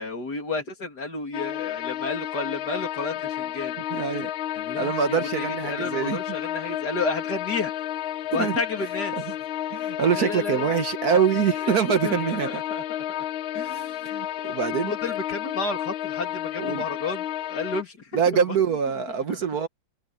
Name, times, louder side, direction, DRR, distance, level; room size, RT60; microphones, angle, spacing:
voice 1, 0.0-3.8 4.5-7.8 8.3-9.1 10.1-10.9 11.6-11.7 12.0-13.2 13.5-13.9 14.9-18.6 19.3-19.4, left 3 dB, 55° left, 3.3 m, -32 dB
sound 1, 1.3-17.8, left 12 dB, 85° left, 1.6 m, -31 dB
voice 2, 3.9-4.3 4.8-6.2 8.3-8.6 9.7-12.6 13.6-14.9 16.6-16.8 18.1-19.7, right 7 dB, 55° right, 1.5 m, -24 dB
omnidirectional pair, 2.1 m